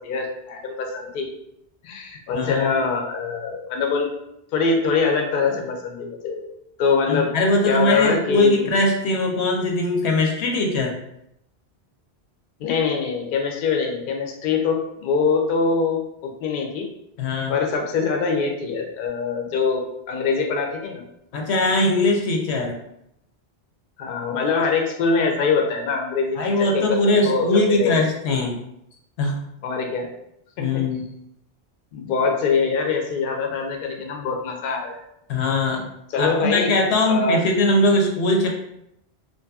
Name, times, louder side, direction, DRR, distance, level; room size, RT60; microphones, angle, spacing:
voice 1, 0.0-1.3 1.8-4.1 4.5-6.5 6.8-7.3 7.7-8.7 12.6-16.9 17.5-21.0 24.0-26.8 27.2-28.0 29.6-30.1 30.6-30.8 31.9-35.0 36.1-36.7 37.0-37.4, left 4 dB, 60° left, 2 dB, 0.6 m, -23 dB
voice 2, 2.3-2.7 7.1-10.9 17.2-17.6 21.3-22.7 26.4-28.6 29.2-29.4 30.6-31.0 35.3-35.8 36.2-38.5, left 2 dB, 90° left, 1 dB, 0.9 m, -21 dB
2.6 x 2.5 x 2.3 m, 0.79 s
omnidirectional pair, 1.1 m